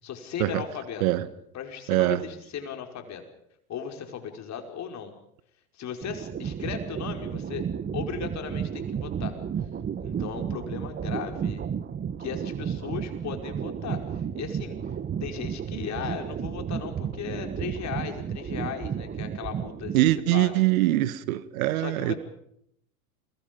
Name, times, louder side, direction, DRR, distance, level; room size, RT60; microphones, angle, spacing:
voice 1, 0.0-3.2 3.7-5.1 5.7-7.7 7.9-9.4 10.0-11.7 12.2-14.8 15.2-20.6 21.8-22.2, left 8 dB, 40° left, 5.3 m, -37 dB
voice 2, 1.9-2.2 19.9-22.1, right 16 dB, 70° right, 1.5 m, -23 dB
sound 1, 6.0-20.2, right 8 dB, 25° right, 1.3 m, -33 dB
30.0 x 23.5 x 5.4 m
hypercardioid pair, 100°, 43 cm